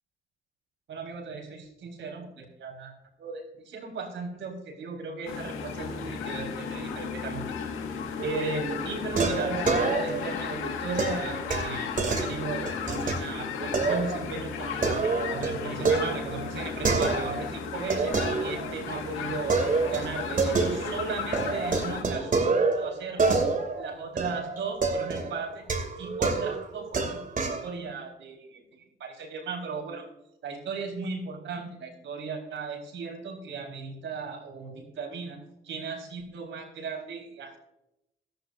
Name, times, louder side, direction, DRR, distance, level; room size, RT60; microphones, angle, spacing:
voice 1, 0.9-2.9 3.2-7.7 8.2-15.0 15.3-23.4 23.7-25.6 26.0-27.2 27.6-30.0 30.4-35.4 35.6-37.6, right 4 dB, 70° right, 1 dB, 4.3 m, -36 dB
sound 1, 5.3-22.0, left 6 dB, 90° left, 1.8 m, -35 dB
sound 2, 8.2-8.6 9.1-10.4 11.0-13.2 13.7-14.2 14.5-17.5 17.9-19.0 19.5-21.0 21.3-27.7, right 4 dB, 45° right, 2.7 m, -28 dB
17.5 x 12.0 x 2.6 m, 0.85 s
cardioid pair, 90°, 20 cm